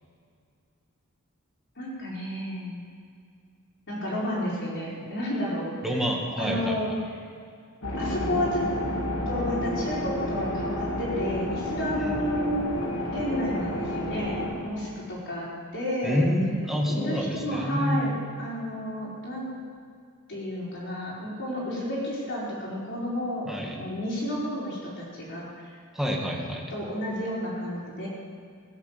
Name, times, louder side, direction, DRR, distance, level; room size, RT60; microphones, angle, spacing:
voice 1, 1.8-2.8 3.9-6.0 6.4-6.9 8.0-8.6 9.3-12.8 13.1-15.5 15.7-16.2 16.9-19.5 20.3-23.5 23.7-25.7 26.7-28.1, equal, 60° left, -6 dB, 4.8 m, -31 dB
voice 2, 5.8-6.8 12.0-12.2 16.0-18.1 23.5-23.8 26.0-26.7, equal, ahead, -1 dB, 1.8 m, -27 dB
sound 1, 7.8-14.5, left 1 dB, 90° left, 3.3 m, -30 dB
17.0 x 8.2 x 7.4 m, 2.3 s
head